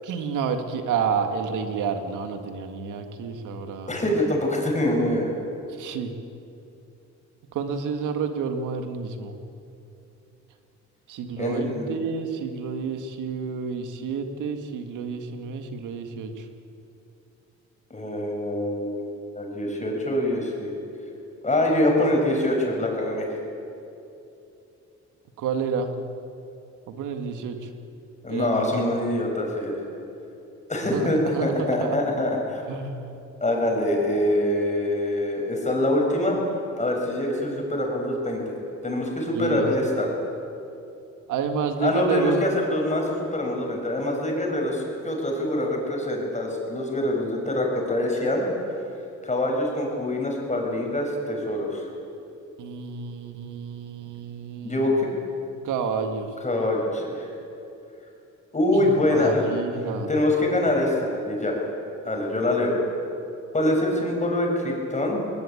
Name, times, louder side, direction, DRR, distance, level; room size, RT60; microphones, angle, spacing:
voice 1, 0.0-4.0 5.8-6.1 7.5-9.4 11.1-16.4 25.4-26.0 26.9-27.7 28.3-28.8 30.9-32.1 32.7-33.2 39.3-39.7 41.3-42.4 52.6-54.9 55.6-56.3 58.7-60.1, right 6 dB, 85° right, 6 dB, 2.1 m, -30 dB
voice 2, 3.9-5.3 11.4-11.9 17.9-20.7 21.4-23.3 28.2-29.7 30.7-32.6 33.4-36.4 36.8-38.5 38.8-40.1 41.8-48.5 49.2-51.9 54.6-55.1 56.4-57.3 58.5-59.5 60.1-61.6 62.0-62.8 63.5-65.2, left 1 dB, 25° left, 0 dB, 6.9 m, -24 dB
20.5 x 20.0 x 8.7 m, 2.8 s
cardioid pair, 90°, 30 cm